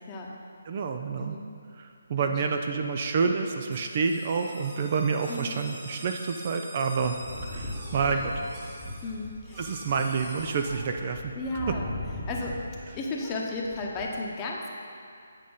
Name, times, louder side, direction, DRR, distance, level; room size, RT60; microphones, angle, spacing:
voice 1, 0.7-1.4 1.8-7.2 7.4-8.3 9.6-11.3, right 5 dB, 40° right, 5 dB, 0.5 m, -28 dB
voice 2, 1.2-1.5 2.2-2.4 5.3-5.6 9.0-9.8 11.3-11.9 12.3-14.7, left 2 dB, 20° left, -1 dB, 1.0 m, -34 dB
sound 1, 3.7-10.8, right 1 dB, 25° right, 1.6 m, -46 dB
sound 2, 7.0-12.9 13.2-14.1, left 1 dB, ahead, 1.1 m, -39 dB
8.7 x 5.0 x 5.5 m, 2.4 s
figure-of-eight pair, 155°, 0 cm